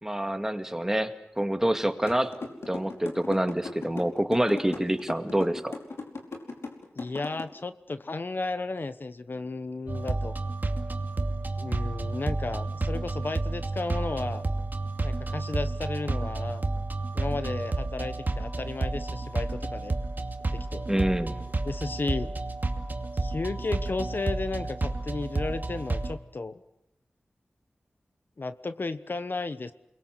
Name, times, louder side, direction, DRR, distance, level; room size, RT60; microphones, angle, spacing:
voice 1, 0.0-1.1 1.4-2.3 2.7-5.8 20.9-21.4, right 1 dB, 10° right, 7 dB, 2.2 m, -26 dB
sound 1, 2.1-7.4, left 3 dB, 80° left, 5.0 m, -37 dB
voice 2, 6.9-10.3 11.6-14.4 15.0-16.7 17.1-19.9 20.5-20.9 21.6-22.3 23.1-26.6 28.4-29.7, left 3 dB, 50° left, 11 dB, 1.1 m, -34 dB
sound 2, 9.9-26.1, right 2 dB, 45° right, 2.4 m, -31 dB
29.5 x 22.0 x 8.1 m, 0.85 s
wide cardioid pair, 95°, 4 cm